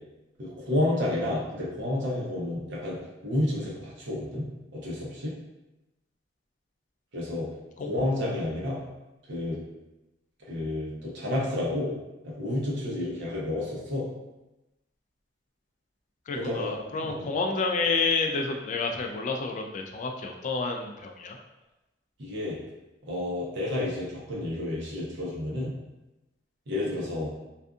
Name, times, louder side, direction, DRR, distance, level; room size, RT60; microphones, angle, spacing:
voice 1, 0.4-3.0 3.2-4.5 4.7-5.3 7.1-7.5 7.9-8.8 9.3-9.6 10.5-11.9 12.2-14.1 16.3-16.7 17.0-17.3 22.2-22.6 23.1-25.7 26.7-27.3, left 1 dB, 65° right, -5 dB, 0.8 m, -30 dB
voice 2, 16.3-21.4, left 4 dB, 40° left, 2 dB, 0.3 m, -29 dB
2.5 x 2.3 x 2.4 m, 1.0 s
head